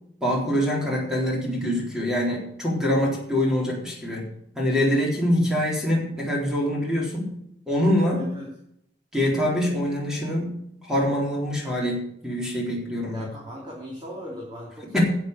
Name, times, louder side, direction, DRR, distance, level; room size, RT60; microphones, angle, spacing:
voice 1, 0.2-4.2 4.6-7.3 7.7-8.2 9.1-10.6 10.8-13.3 14.9-15.0, equal, 5° right, -4 dB, 3.9 m, -24 dB
voice 2, 8.1-8.5 13.1-15.0, equal, 25° right, -5 dB, 3.2 m, -38 dB
12.0 x 7.5 x 8.2 m, 0.74 s
head